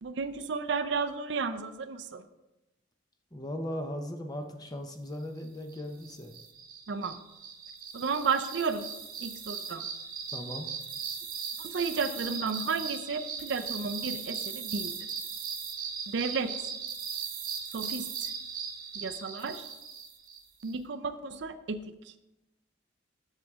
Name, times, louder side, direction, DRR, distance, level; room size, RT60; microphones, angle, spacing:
voice 1, 0.0-2.2 6.9-7.2 7.9-8.9 9.2-9.8 11.6-15.2 16.1-16.7 17.6-18.3 19.0-19.7 20.6-22.1, right 4 dB, 60° right, 9 dB, 0.4 m, -33 dB
voice 2, 3.3-6.3 10.3-10.7, left 1 dB, 20° left, 5 dB, 0.6 m, -38 dB
sound 1, 5.7-20.7, right 6 dB, 45° right, 0.9 m, -38 dB
7.8 x 6.7 x 3.6 m, 0.97 s
head